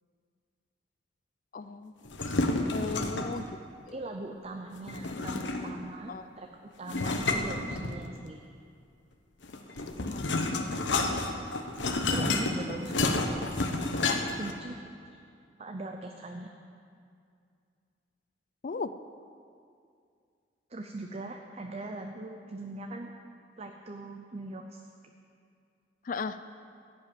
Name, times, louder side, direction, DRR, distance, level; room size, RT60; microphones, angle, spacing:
voice 1, 1.5-1.9 2.7-3.5 6.1-6.2 10.1-10.3 18.6-18.9 26.0-26.4, left 4 dB, 45° left, 12 dB, 0.4 m, -35 dB
sound 1, 2.0-3.4 4.9-5.9 6.9-8.3 9.4-14.5, left 2 dB, 85° left, 1.0 m, -30 dB
voice 2, 2.7-3.3 3.9-8.4 11.1-11.5 12.1-13.6 14.4-14.8 15.0-15.2 15.6-16.5 20.7-23.1 23.6-24.8, right 2 dB, 35° right, 3 dB, 0.6 m, -41 dB
15.5 x 5.5 x 8.7 m, 2.3 s
head